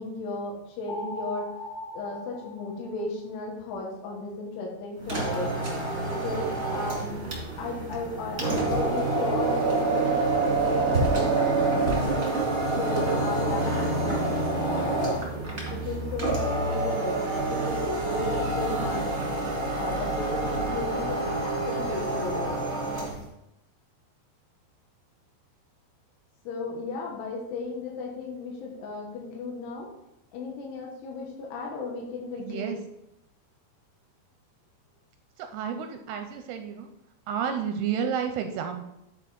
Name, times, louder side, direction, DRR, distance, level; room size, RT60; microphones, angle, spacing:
voice 1, 0.0-1.5 1.9-5.5 6.0-7.2 7.6-12.2 12.7-19.2 19.4-22.6 26.4-29.9 30.3-32.8, left 3 dB, 75° left, -2 dB, 3.4 m, -35 dB
sound 1, 0.9-3.3, left 1 dB, 30° left, 2.7 m, -39 dB
sound 2, 5.0-23.2, right 2 dB, 35° right, 1.3 m, -27 dB
voice 2, 32.4-32.8 35.4-36.9 37.3-38.8, right 7 dB, 85° right, 6 dB, 2.5 m, -31 dB
10.0 x 4.8 x 4.2 m, 0.85 s
omnidirectional pair, 5.0 m